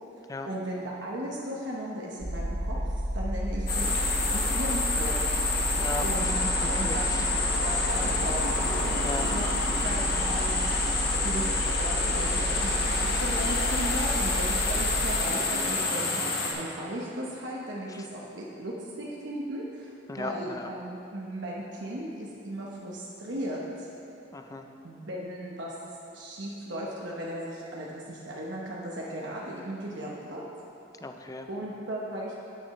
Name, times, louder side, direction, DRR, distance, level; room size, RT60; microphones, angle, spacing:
voice 1, 0.5-5.2 5.6-5.7 6.0-6.3 6.7-7.3 7.6-9.5 9.8-10.8 11.2-11.5 11.8-23.9 24.8-25.8 26.1-30.4 31.5-32.3, right 1 dB, 70° right, -4 dB, 1.0 m, -36 dB
sound 1, 2.2-15.2, equal, 45° right, 2.1 m, -31 dB
sound 2, 3.7-16.5, left 3 dB, 55° left, 1.3 m, -28 dB
voice 2, 5.8-7.3 9.0-9.3 14.8-14.9 17.9-18.1 20.1-20.7 24.3-24.7 31.0-31.5, left 2 dB, 20° left, 5 dB, 0.4 m, -37 dB
10.0 x 8.7 x 3.2 m, 2.8 s
head